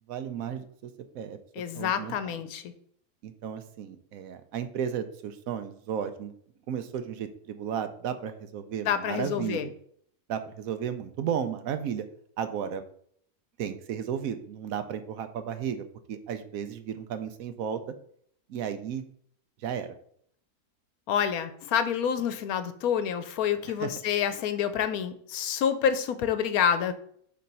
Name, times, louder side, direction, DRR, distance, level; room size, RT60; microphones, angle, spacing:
voice 1, 0.1-1.4 1.7-2.2 3.2-6.3 6.7-9.7 10.3-12.1 12.4-12.8 13.6-17.8 18.5-19.0 19.6-19.9 23.8-23.9, right 8 dB, 70° right, 9 dB, 1.0 m, -34 dB
voice 2, 1.6-2.7 8.9-9.7 21.1-26.9, left 8 dB, 75° left, 11 dB, 1.1 m, -28 dB
6.8 x 3.2 x 5.3 m, 0.64 s
omnidirectional pair, 1.6 m